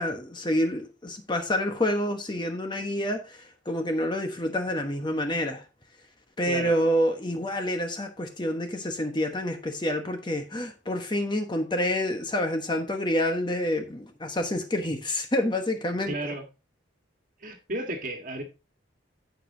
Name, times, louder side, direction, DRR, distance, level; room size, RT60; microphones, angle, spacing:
voice 1, 0.0-5.6 6.4-16.1, left 1 dB, 25° left, 1.1 m, -28 dB
voice 2, 16.1-16.5 17.4-18.4, right 1 dB, 45° right, 1.6 m, -33 dB
15.5 x 5.3 x 2.8 m
head